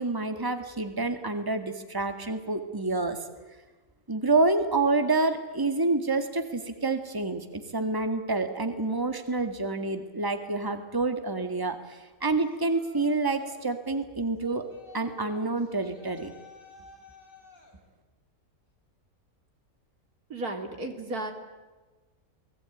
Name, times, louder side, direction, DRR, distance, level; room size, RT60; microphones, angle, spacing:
voice 1, 0.0-3.2 4.1-14.6 14.9-16.3, right 3 dB, 15° right, 7 dB, 2.0 m, -28 dB
Yell, 12.4-13.7 14.4-17.8, left 3 dB, 35° left, 5.1 m, -52 dB
voice 2, 20.3-21.3, right 2 dB, 85° right, 5 dB, 3.6 m, -34 dB
28.5 x 20.0 x 9.3 m, 1.2 s
omnidirectional pair, 1.5 m